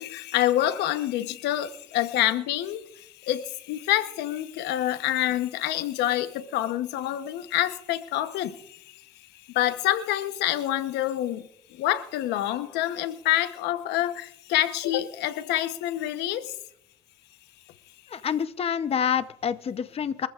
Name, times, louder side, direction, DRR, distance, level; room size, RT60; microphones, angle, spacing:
voice 1, 0.0-9.0 9.5-16.5, left 13 dB, 90° left, 1.0 m, -27 dB
voice 2, 18.1-20.3, left 8 dB, 35° left, 0.8 m, -27 dB
24.0 x 14.5 x 2.5 m
cardioid pair, 110°, 17 cm